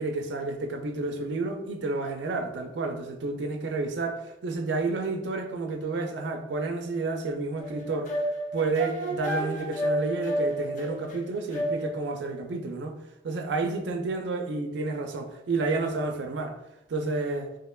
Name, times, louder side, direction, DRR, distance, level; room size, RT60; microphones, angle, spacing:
voice 1, 0.0-8.1 8.5-13.0 13.2-16.5 16.9-17.5, right 3 dB, 65° right, 4 dB, 0.4 m, -30 dB
sound 1, 7.6-12.1, right 1 dB, 40° left, 0.4 m, -30 dB
3.5 x 2.1 x 2.2 m, 0.88 s
head